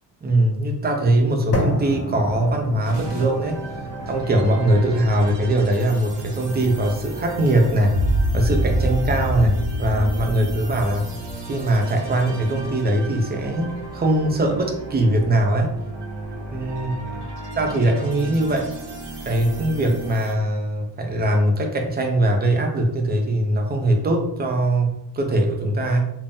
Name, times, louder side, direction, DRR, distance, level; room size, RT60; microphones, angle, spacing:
voice 1, 0.2-3.6 4.1-7.9 8.3-11.1 11.5-15.7 16.5-16.9 17.6-18.7 19.2-26.0, right 1 dB, 25° right, 2 dB, 0.4 m, -21 dB
sound 1, 1.5-9.6, equal, 35° left, 0.5 m, -32 dB
sound 2, 2.8-20.3, right 2 dB, 80° right, 1.0 m, -35 dB
sound 3, 7.9-12.3, equal, 55° left, 1.1 m, -24 dB
2.5 x 2.0 x 3.4 m, 0.76 s
wide cardioid pair, 170°, 42 cm